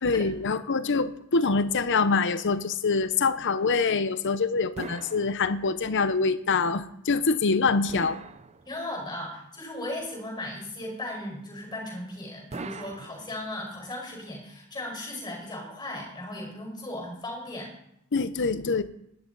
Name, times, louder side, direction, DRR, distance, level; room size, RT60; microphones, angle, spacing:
voice 1, 0.0-8.2 18.1-18.8, left 4 dB, 55° left, 12 dB, 0.8 m, -25 dB
sound 1, 4.8-5.9 7.9-9.1 12.5-13.8, right 4 dB, 30° right, 0.5 m, -42 dB
voice 2, 8.7-17.7, left 1 dB, 20° left, 0 dB, 5.1 m, -36 dB
19.5 x 11.5 x 4.1 m, 0.77 s
head